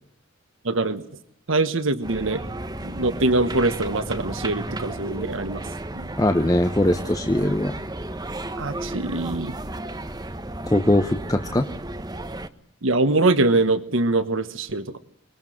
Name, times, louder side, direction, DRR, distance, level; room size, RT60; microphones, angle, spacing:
voice 1, 0.6-1.0 1.5-2.4 2.8-5.6 5.9-6.1 8.6-9.5 12.8-15.0, right 2 dB, 85° right, 11 dB, 1.3 m, -23 dB
sound 1, 2.0-12.5, right 1 dB, 20° right, 1.1 m, -33 dB
voice 2, 6.2-7.7 10.7-11.7, left 1 dB, 20° left, 7 dB, 1.0 m, -21 dB
24.5 x 21.5 x 9.3 m, 0.73 s
head